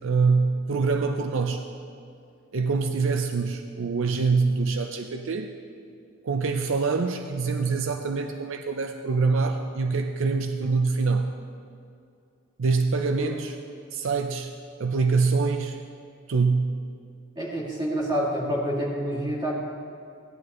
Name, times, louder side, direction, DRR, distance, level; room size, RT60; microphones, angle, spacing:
voice 1, 0.0-1.6 2.5-5.5 6.2-11.3 12.6-13.6 13.9-14.5 14.8-15.8 16.3-16.8, right 4 dB, 70° right, 6 dB, 0.5 m, -25 dB
voice 2, 17.4-19.5, equal, 20° right, -5 dB, 2.4 m, -28 dB
16.5 x 11.0 x 3.1 m, 2.4 s
head